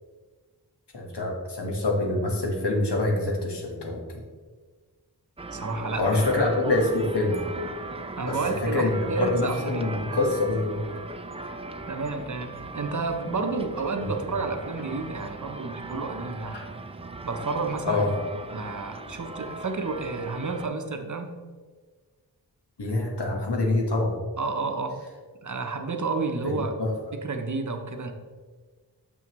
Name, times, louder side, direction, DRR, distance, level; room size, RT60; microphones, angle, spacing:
voice 1, 0.9-4.0 6.0-7.5 8.2-8.4 8.6-10.8 14.0-14.1 16.5-16.6 17.8-18.1 22.8-24.2 26.4-26.9, left 2 dB, 85° left, -1 dB, 1.3 m, -25 dB
sound 1, 5.4-20.7, right 3 dB, 15° right, 0.4 m, -39 dB
voice 2, 5.5-6.2 8.2-9.9 11.9-16.6 17.2-18.1 18.5-21.3 24.4-25.0 25.4-26.7 27.1-28.1, right 3 dB, 50° right, 6 dB, 0.8 m, -31 dB
7.0 x 6.0 x 3.0 m, 1.5 s
wide cardioid pair, 50°, 40 cm